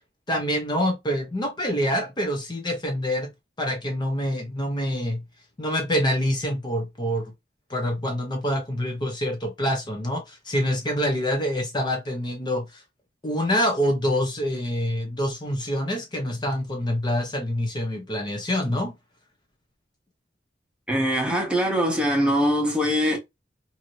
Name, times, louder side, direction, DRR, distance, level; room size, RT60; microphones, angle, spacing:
voice 1, 0.3-3.3 3.6-5.2 5.6-7.3 7.7-12.8 13.2-18.9, equal, 25° left, 0.7 m, -26 dB
voice 2, 20.9-23.2, equal, 5° right, 0.9 m, -22 dB
2.7 x 2.7 x 3.0 m
head